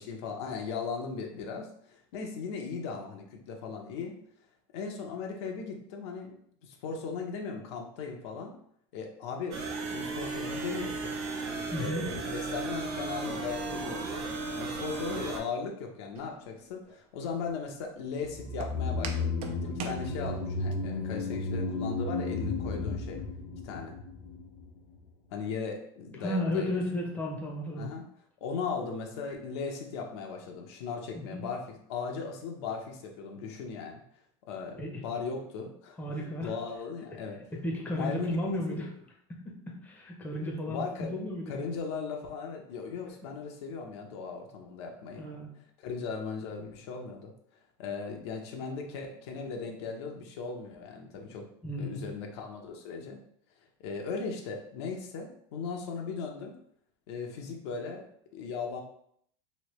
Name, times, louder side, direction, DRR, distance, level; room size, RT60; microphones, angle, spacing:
voice 1, 0.0-4.2 4.7-8.5 8.9-11.2 11.8-14.2 14.5-23.2 23.6-24.0 25.3-26.8 27.8-28.0 28.4-34.0 34.5-37.4 37.9-38.9 40.6-41.1 41.5-45.3 45.8-47.3 47.8-51.5 51.8-53.2 53.8-56.6 57.1-58.8, left 5 dB, 85° left, 2 dB, 0.7 m, -38 dB
sound 1, 9.5-15.4, right 3 dB, 85° right, 0.8 m, -35 dB
voice 2, 11.7-12.1 26.2-27.9 31.1-31.4 34.8-34.9 36.0-36.5 37.6-38.9 39.4-40.8 41.1-41.6 45.1-45.5 51.6-52.1, left 1 dB, 10° left, -1 dB, 0.7 m, -33 dB
Walk footsteps, 16.2-20.8, right 6 dB, 45° right, 0.4 m, -45 dB
sound 2, 18.3-24.7 25.0-25.1, left 3 dB, 55° left, 0.6 m, -33 dB
3.1 x 2.7 x 3.0 m, 0.67 s
supercardioid pair, 140°, 14 cm